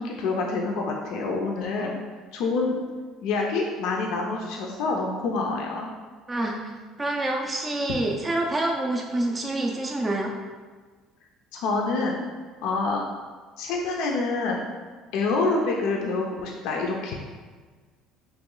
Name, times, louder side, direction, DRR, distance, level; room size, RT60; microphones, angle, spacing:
voice 1, 0.0-1.9 2.3-2.8 3.2-5.9 11.5-12.2 12.6-13.0 13.6-14.6 15.1-17.1, left 3 dB, 75° left, 0 dB, 0.4 m, -27 dB
voice 2, 6.3-6.6 7.0-10.3, right 1 dB, 15° right, 0 dB, 0.3 m, -27 dB
3.0 x 3.0 x 3.7 m, 1.4 s
cardioid pair, 135°, 0 cm